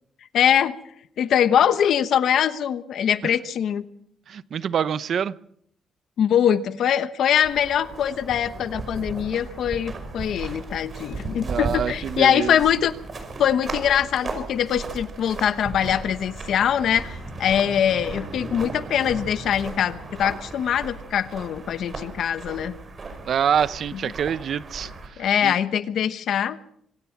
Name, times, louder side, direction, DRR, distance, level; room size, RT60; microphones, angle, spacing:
voice 1, 0.3-0.8 1.2-3.8 6.2-12.9 13.4-22.7 25.2-26.6, left 9 dB, 70° left, 1.1 m, -22 dB
voice 2, 4.3-5.3 11.4-12.6 23.3-25.5, right 8 dB, 55° right, 0.8 m, -26 dB
sound 1, 7.4-25.1, right 3 dB, 35° right, 5.5 m, -36 dB
25.5 x 17.0 x 5.9 m
cardioid pair, 135°, 0 cm